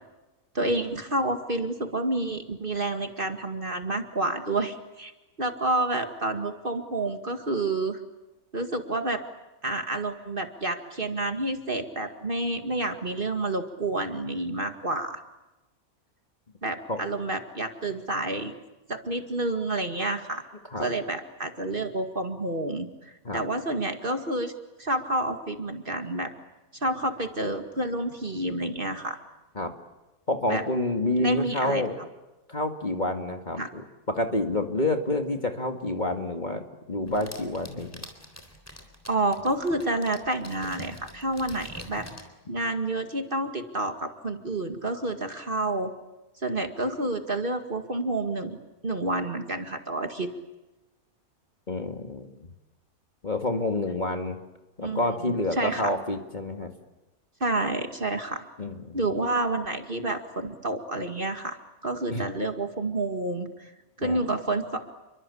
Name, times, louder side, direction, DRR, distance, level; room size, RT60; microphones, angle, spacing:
voice 1, 0.5-5.1 5.4-8.0 8.5-9.2 9.6-15.2 16.6-18.5 18.9-20.4 20.8-24.5 24.8-26.3 26.7-29.2 30.5-30.6 31.2-31.8 33.6-33.7 39.1-42.1 42.5-45.9 46.4-48.6 48.8-50.3 54.8-55.0 55.5-55.9 57.4-58.4 58.9-61.6 61.8-63.7 64.0-64.8, right 2 dB, 35° right, 6 dB, 2.2 m, -29 dB
voice 2, 30.3-32.0 32.5-36.6 36.9-38.0 51.7-52.5 53.2-54.4 54.8-56.7 58.6-59.1 62.1-62.2 64.0-64.2, left 2 dB, 30° left, 5 dB, 2.3 m, -28 dB
sound 1, 37.1-42.3, left 1 dB, 10° left, 3.7 m, -45 dB
29.5 x 23.5 x 8.5 m, 1.0 s
omnidirectional pair, 1.5 m